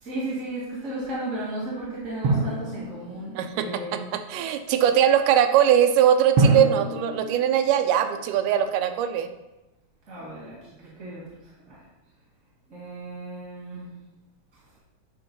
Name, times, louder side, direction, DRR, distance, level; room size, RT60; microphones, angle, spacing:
voice 1, 0.0-4.1 10.1-10.5 11.0-11.2 11.7-11.8 12.7-13.9, right 1 dB, 30° right, -8 dB, 1.5 m, -34 dB
Drum, 2.2-3.7 6.4-8.5, right 2 dB, 60° right, 1.9 m, -26 dB
voice 2, 3.4-9.3, right 10 dB, 80° right, 7 dB, 2.1 m, -21 dB
9.2 x 3.6 x 5.2 m, 0.99 s
omnidirectional pair, 3.9 m